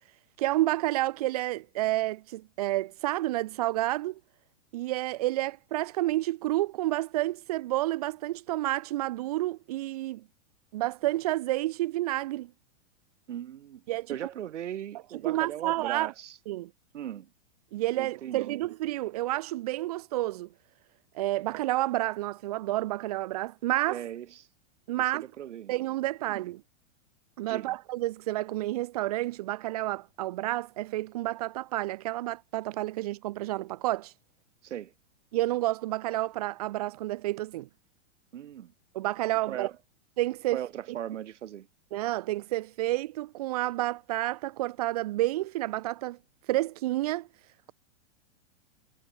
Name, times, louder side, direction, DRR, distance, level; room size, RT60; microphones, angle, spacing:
voice 1, 0.4-4.2 4.7-10.2 10.7-12.5 13.9-14.2 15.1-16.1 16.5-16.7 17.7-20.5 21.1-24.0 24.9-25.3 25.7-26.6 27.4-34.1 35.3-37.7 38.9-39.7 40.2-40.6 41.9-46.2 46.5-47.3, right 17 dB, 30° right, 0.9 m, -30 dB
voice 2, 13.3-13.8 14.1-16.4 16.9-17.3 18.0-18.6 23.9-24.5 25.4-25.7 26.3-26.5 27.5-27.8 34.6-34.9 38.3-38.7 39.4-39.8 40.5-41.7, right 11 dB, 70° right, 4.5 m, -38 dB
supercardioid pair, 180°, 37 cm